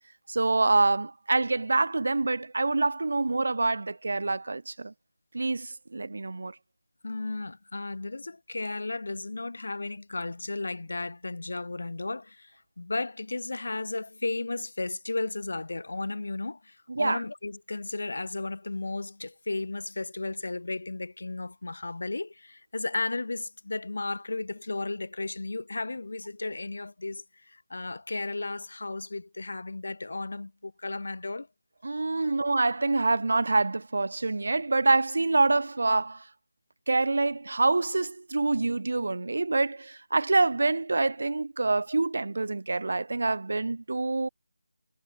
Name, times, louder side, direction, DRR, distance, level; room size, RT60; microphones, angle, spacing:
voice 1, 0.3-4.9 5.3-6.6 16.9-17.2 31.8-36.3 36.9-44.3, right 3 dB, 60° right, 2.2 m, -26 dB
voice 2, 7.0-31.5 32.2-32.3, left 2 dB, 60° left, 5.6 m, -34 dB
figure-of-eight pair, 160°, 0 cm